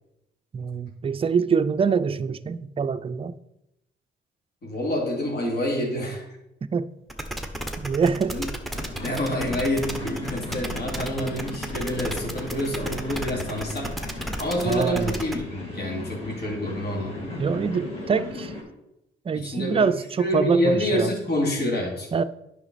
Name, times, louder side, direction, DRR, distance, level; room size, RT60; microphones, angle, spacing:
voice 1, 0.5-3.4 6.7-6.9 7.8-8.4 14.7-15.1 17.4-18.5 19.3-21.1 22.1-22.2, right 6 dB, 30° right, 0.4 m, -24 dB
voice 2, 4.6-6.2 8.3-8.5 9.0-13.9 14.4-17.3 19.3-19.9 20.2-22.1, left 1 dB, 55° left, 2.6 m, -27 dB
sound 1, 7.1-15.4, right 1 dB, ahead, 1.0 m, -33 dB
sound 2, 8.7-18.6, left 2 dB, 30° left, 2.9 m, -37 dB
9.0 x 5.9 x 4.1 m
cardioid pair, 90°, 20 cm